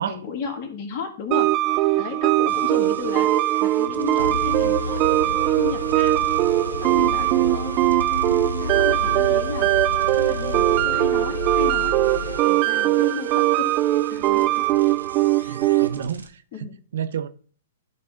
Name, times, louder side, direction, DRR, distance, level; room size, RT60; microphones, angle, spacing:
voice 1, 0.0-3.3 3.6-5.0 5.5-6.3 6.7-7.8 8.3-9.7 10.2-12.0 12.4-13.7 14.1-14.7 15.4-15.6 15.9-16.0 16.5-16.8, left 6 dB, 40° left, 2.3 m, -34 dB
sound 1, 1.3-16.1, right 16 dB, 35° right, 0.3 m, -21 dB
sound 2, 2.5-16.3, right 4 dB, 85° right, 1.2 m, -44 dB
sound 3, 4.2-12.4, left 4 dB, 90° left, 0.3 m, -31 dB
voice 2, 15.5-16.3 16.6-17.3, right 8 dB, 65° right, 0.7 m, -30 dB
12.0 x 4.0 x 3.8 m
figure-of-eight pair, 115°, 0 cm